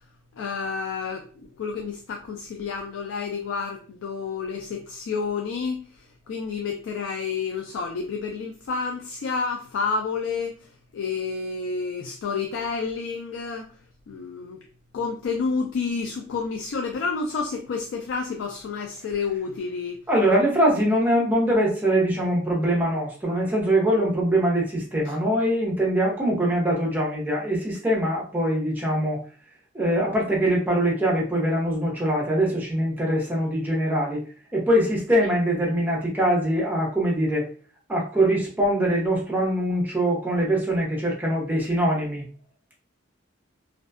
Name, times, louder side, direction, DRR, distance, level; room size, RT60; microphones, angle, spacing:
voice 1, 0.4-1.2 1.6-10.7 10.9-13.7 14.1-14.6 14.9-20.0 25.1-25.2, left 5 dB, 85° left, 3 dB, 0.3 m, -30 dB
voice 2, 20.1-29.2 29.7-34.2 34.5-37.4 37.9-42.2, right 1 dB, 10° right, -3 dB, 0.6 m, -23 dB
2.5 x 2.1 x 2.3 m, 0.40 s
head